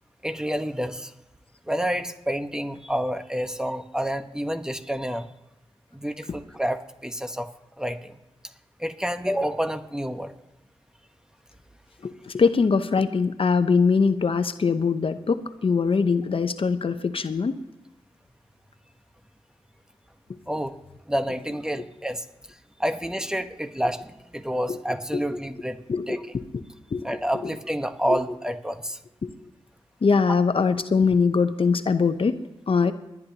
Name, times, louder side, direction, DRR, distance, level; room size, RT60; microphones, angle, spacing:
voice 1, 0.2-1.1 1.7-5.3 5.9-7.5 7.8-8.2 8.8-10.3 20.5-20.7 21.1-26.2 27.0-29.0, equal, 5° right, 7 dB, 1.2 m, -29 dB
voice 2, 12.0-17.6 24.7-24.8 25.1-25.2 25.9-26.1 26.9-27.1 27.4-27.5 28.1-28.2 29.2-29.3 30.0-32.4 32.7-32.9, left 5 dB, 60° left, 10 dB, 0.9 m, -22 dB
24.5 x 11.0 x 2.9 m, 0.94 s
cardioid pair, 40°, 10 cm